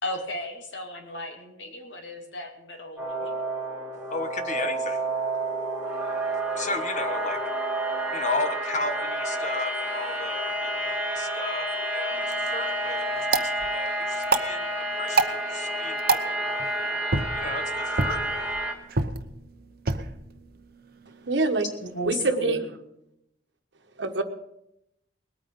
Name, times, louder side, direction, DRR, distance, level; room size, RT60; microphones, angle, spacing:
voice 1, 0.0-3.4 21.8-22.6, left 1 dB, 85° left, 3 dB, 2.7 m, -34 dB
sound 1, 3.0-18.7, right 1 dB, 10° right, 2.2 m, -30 dB
voice 2, 4.1-5.1 6.5-7.4 8.1-16.7 17.3-18.5, left 3 dB, 45° left, 8 dB, 1.3 m, -34 dB
sound 2, 12.1-22.2, right 3 dB, 55° right, 0.9 m, -31 dB
voice 3, 21.3-21.7 22.1-22.6 24.0-24.2, right 3 dB, 75° right, 7 dB, 1.3 m, -25 dB
20.5 x 9.1 x 5.5 m, 0.80 s
head